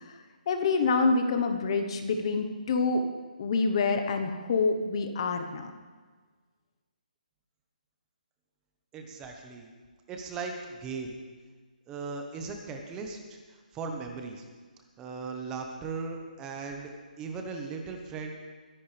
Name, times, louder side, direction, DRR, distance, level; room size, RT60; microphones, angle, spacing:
voice 1, 0.5-3.0 3.4-5.7, left 4 dB, 35° left, 6 dB, 1.1 m, -26 dB
voice 2, 8.9-9.7 10.1-11.2 11.9-14.4 15.0-16.9 17.2-18.3, right 4 dB, 15° right, 3 dB, 1.1 m, -38 dB
22.0 x 10.5 x 3.4 m, 1.5 s
hypercardioid pair, 165°, 5 cm